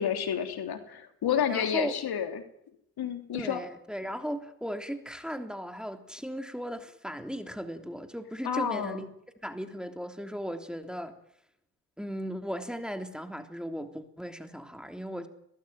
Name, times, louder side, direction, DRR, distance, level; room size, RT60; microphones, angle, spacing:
voice 1, 0.0-2.4 3.0-3.6 8.4-9.0, left 8 dB, 60° left, 3.4 m, -30 dB
voice 2, 1.5-2.0 3.3-9.1 9.4-11.2 12.0-15.3, equal, ahead, 3.2 m, -37 dB
23.5 x 19.0 x 9.4 m
hypercardioid pair, 50°, 43 cm